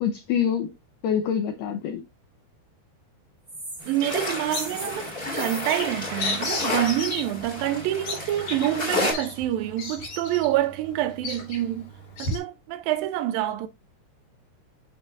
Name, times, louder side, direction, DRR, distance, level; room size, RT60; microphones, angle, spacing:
voice 1, 0.0-0.7 1.0-2.0, left 8 dB, 80° left, 1.9 m, -25 dB
sound 1, 3.5-7.3, right 2 dB, 15° right, 1.4 m, -41 dB
sound 2, 3.8-9.1, left 2 dB, 25° left, 1.3 m, -31 dB
voice 2, 3.9-11.9 12.2-13.7, right 13 dB, 80° right, 2.1 m, -27 dB
Bird vocalization bird call bird song, 4.1-12.4, left 2 dB, 60° left, 4.6 m, -35 dB
12.5 x 4.4 x 2.5 m
omnidirectional pair, 4.7 m